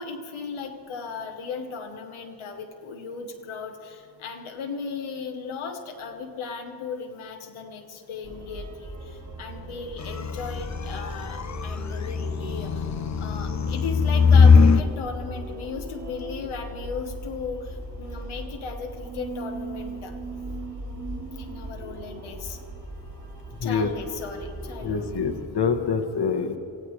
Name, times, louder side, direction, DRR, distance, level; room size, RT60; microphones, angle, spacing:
voice 1, 0.0-12.9 13.2-20.4 21.3-22.6 23.6-25.1, left 5 dB, 85° left, 3 dB, 1.3 m, -36 dB
sound 1, 8.2-25.5, right 1 dB, 55° right, 4.7 m, -39 dB
sound 2, 10.0-14.9, left 5 dB, 35° left, 0.7 m, -20 dB
voice 2, 24.8-26.6, left 5 dB, 55° left, 5 dB, 1.3 m, -25 dB
24.5 x 15.5 x 3.2 m, 2.5 s
cardioid pair, 60°, 47 cm